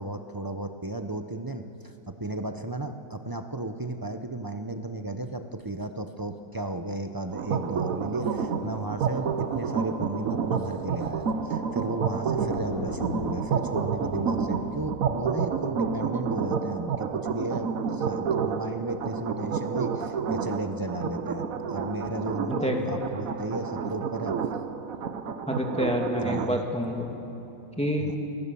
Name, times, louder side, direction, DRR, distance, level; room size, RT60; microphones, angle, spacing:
voice 1, 0.0-24.4 26.2-26.6 28.0-28.2, right 2 dB, 25° right, 7 dB, 0.4 m, -34 dB
sound 1, 7.3-26.5, right 6 dB, 55° right, 1.2 m, -30 dB
Thunder, 8.0-8.1 8.5-8.6 9.0-9.1 9.4-9.5 9.7-14.9, equal, 50° left, 2.6 m, -41 dB
voice 2, 25.5-27.1 27.8-28.1, equal, 5° left, 1 dB, 2.5 m, -27 dB
30.0 x 22.0 x 7.1 m, 3.0 s
omnidirectional pair, 2.0 m